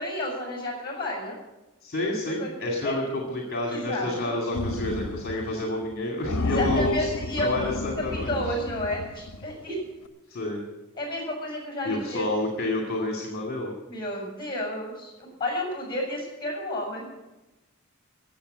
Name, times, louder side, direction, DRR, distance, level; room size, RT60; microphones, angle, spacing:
voice 1, 0.0-1.4 2.2-2.5 2.8-2.9 3.7-4.4 6.4-7.7 8.3-9.8 11.0-12.3 13.9-17.1, left 1 dB, 20° left, 0 dB, 6.5 m, -31 dB
voice 2, 1.8-7.1 7.4-8.5 10.3-10.6 11.8-13.7, left 1 dB, 45° left, 0 dB, 2.3 m, -29 dB
sound 1, 4.5-5.5 5.8-5.9 6.2-9.6, left 2 dB, 80° left, 1.2 m, -31 dB
15.0 x 7.6 x 8.9 m, 1.1 s
head